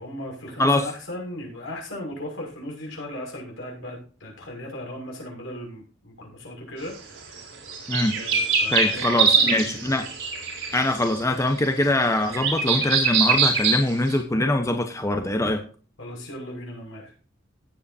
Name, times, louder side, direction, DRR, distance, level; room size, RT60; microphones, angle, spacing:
voice 1, 0.0-7.5 8.1-10.0 16.0-17.1, left 1 dB, 75° left, 0 dB, 6.1 m, -37 dB
sound 1, 6.9-7.0 7.2-14.2, right 5 dB, 75° right, 4.2 m, -23 dB
voice 2, 8.7-10.1 10.7-15.6, left 1 dB, 15° left, 6 dB, 0.9 m, -23 dB
17.0 x 7.9 x 2.7 m, 0.37 s
head